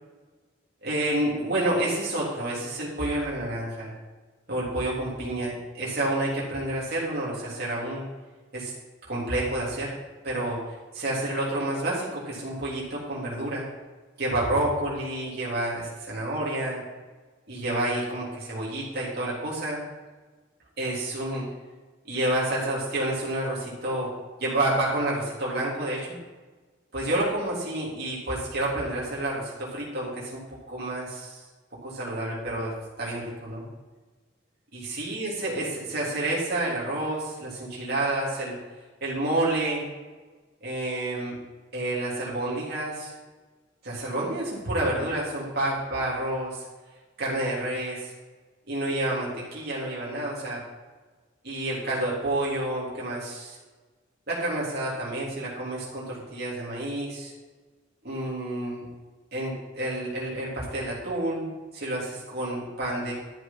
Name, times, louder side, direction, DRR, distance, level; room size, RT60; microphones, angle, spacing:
voice 1, 0.8-3.9 4.5-8.0 8.5-8.7 9.1-9.9 10.2-10.6 10.9-13.6 14.2-16.8 17.5-19.8 20.8-21.4 22.0-24.1 24.4-26.2 26.9-30.4 30.7-31.4 31.8-32.7 33.0-33.6 34.7-38.6 39.0-39.9 40.6-41.4 41.7-43.1 43.8-46.6 47.2-48.1 48.7-50.6 51.4-53.6 54.3-57.3 58.0-58.9 59.3-61.5 61.7-63.1, right 1 dB, 55° right, -5 dB, 3.4 m, -29 dB
12.0 x 8.1 x 6.0 m, 1.3 s
head